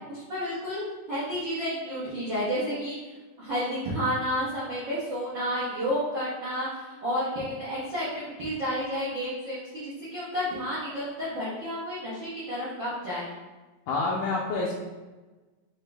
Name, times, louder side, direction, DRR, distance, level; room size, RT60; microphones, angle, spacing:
voice 1, 0.1-0.8 1.1-3.1 3.4-13.2, equal, 75° right, -11 dB, 1.0 m, -31 dB
voice 2, 13.9-14.7, left 3 dB, 75° left, -4 dB, 1.9 m, -27 dB
6.3 x 2.5 x 3.3 m, 1.2 s
omnidirectional pair, 3.8 m